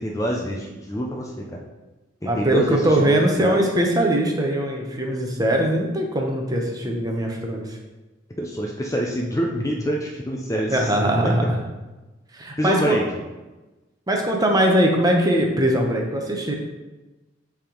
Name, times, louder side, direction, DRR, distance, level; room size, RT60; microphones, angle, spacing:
voice 1, 0.0-1.6 2.3-3.6 8.4-11.3 12.6-13.0, equal, 15° left, -1 dB, 0.4 m, -26 dB
voice 2, 2.2-7.8 10.7-11.4 12.3-13.0 14.1-16.5, right 1 dB, 20° right, 1 dB, 0.7 m, -21 dB
7.1 x 3.5 x 3.7 m, 1.1 s
head